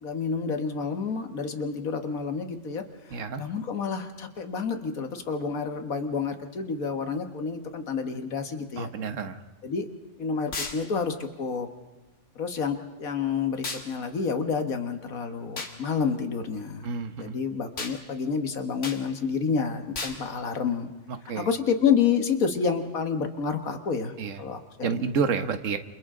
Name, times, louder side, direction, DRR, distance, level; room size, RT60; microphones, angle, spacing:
voice 1, 0.0-8.9 9.6-9.9 10.2-11.7 12.4-16.9 17.2-20.9 21.4-25.1, left 6 dB, 85° left, 7 dB, 2.0 m, -29 dB
voice 2, 3.1-3.4 8.8-9.4 16.8-17.4 21.3-21.5 24.2-24.4 24.8-25.8, right 5 dB, 65° right, 8 dB, 1.5 m, -29 dB
sound 1, 10.5-10.8 13.6-13.9 15.6-15.8 17.8-18.0 18.8-19.0 19.9-20.2, left 3 dB, 60° left, 2.3 m, -33 dB
28.5 x 28.0 x 3.8 m, 1.2 s
omnidirectional pair, 1.4 m